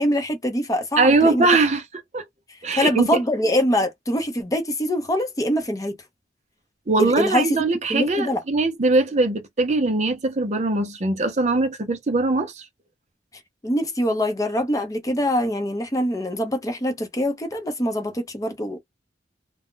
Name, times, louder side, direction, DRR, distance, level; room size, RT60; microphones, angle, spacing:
voice 1, 0.0-1.5 2.8-5.9 7.0-7.6 7.9-8.4 13.6-18.8, equal, 20° left, 0.6 m, -24 dB
voice 2, 1.0-1.8 2.1-2.2 2.6-3.1 6.9-12.6, right 3 dB, 40° right, 0.5 m, -21 dB
2.3 x 2.0 x 3.7 m
head